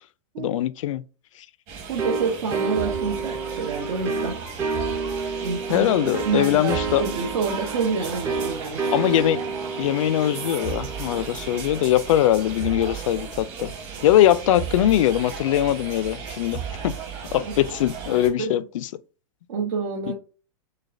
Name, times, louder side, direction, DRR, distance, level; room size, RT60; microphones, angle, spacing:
voice 1, 0.4-1.0 4.1-4.3 5.7-7.0 8.9-9.4 9.8-13.7 14.0-16.9 17.3-18.9 20.1-20.2, left 12 dB, 65° left, 0.4 m, -21 dB
sound 1, 1.7-18.3, right 6 dB, 35° right, 1.3 m, -35 dB
voice 2, 1.9-4.4 5.4-5.9 6.3-8.9 17.3-17.5 18.4-18.5 19.5-20.1, right 5 dB, 75° right, 1.1 m, -28 dB
sound 2, 2.0-12.5, right 4 dB, 15° right, 0.5 m, -30 dB
6.3 x 2.2 x 2.6 m
supercardioid pair, 160°, 18 cm